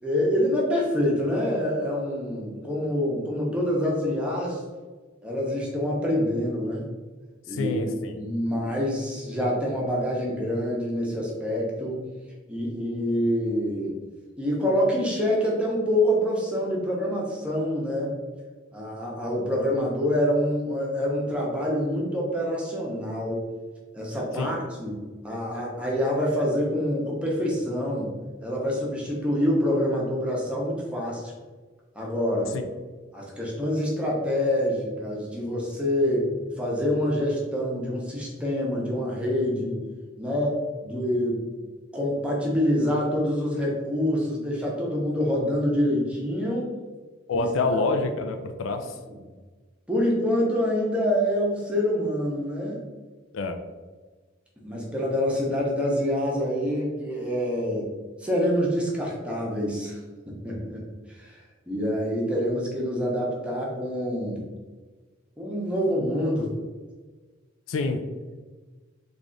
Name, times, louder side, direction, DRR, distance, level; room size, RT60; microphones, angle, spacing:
voice 1, 0.0-4.6 5.2-6.9 7.5-7.8 8.1-12.0 12.5-13.9 14.4-18.1 18.7-23.4 23.9-25.0 25.2-28.1 28.4-31.3 31.9-32.5 33.1-39.8 40.2-41.4 41.9-46.7 47.3-47.5 48.0-48.1 49.1-49.2 49.9-52.8 54.6-57.9 58.2-60.0 60.4-60.8 61.2-61.4 61.7-64.4 65.4-66.5, equal, 5° right, -4 dB, 0.7 m, -26 dB
voice 2, 7.5-8.2 24.4-24.6 32.5-32.7 47.3-49.0 53.3-53.6 67.7-68.0, left 3 dB, 90° left, 6 dB, 0.4 m, -27 dB
3.3 x 2.4 x 3.8 m, 1.4 s
head